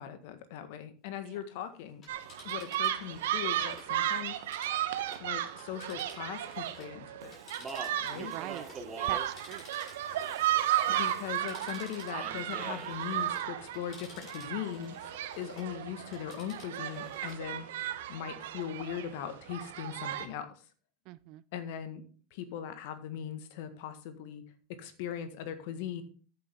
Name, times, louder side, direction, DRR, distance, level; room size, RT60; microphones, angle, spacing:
voice 1, 0.0-2.0 2.4-4.4 5.2-7.4 8.0-8.3 10.9-15.0 15.4-17.6 18.1-20.5 21.5-22.0 22.3-24.4 24.8-26.0, left 9 dB, 60° left, 10 dB, 1.6 m, -39 dB
Telephone, 1.9-7.0 7.3-15.7 16.0-17.4 17.8-17.9, left 3 dB, 35° left, 6.7 m, -54 dB
sound 1, 2.1-20.3, right 12 dB, 70° right, 1.0 m, -34 dB
Speech, 7.2-11.4 12.1-13.0, right 4 dB, 25° right, 2.8 m, -45 dB
voice 2, 8.2-9.7 21.1-21.4, right 18 dB, 55° right, 19 dB, 0.5 m, -43 dB
14.0 x 7.2 x 3.7 m, 0.40 s
hypercardioid pair, 85°, 0 cm